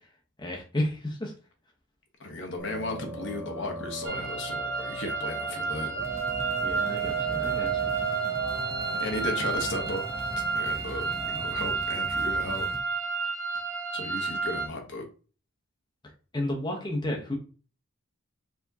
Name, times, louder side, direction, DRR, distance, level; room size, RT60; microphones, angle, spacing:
voice 1, 0.4-1.3 6.6-7.7 16.3-17.3, left 1 dB, 20° left, -1 dB, 0.9 m, -31 dB
voice 2, 2.2-5.9 9.0-10.0 10.5-12.7 13.9-15.1, left 2 dB, 55° left, 3 dB, 1.0 m, -35 dB
sound 1, 2.6-11.8, right 8 dB, 60° right, 0.8 m, -35 dB
sound 2, 4.0-14.7, right 4 dB, 75° right, 1.4 m, -31 dB
sound 3, 6.0-12.8, right 1 dB, 10° right, 0.4 m, -41 dB
4.5 x 3.5 x 2.7 m, 0.37 s
head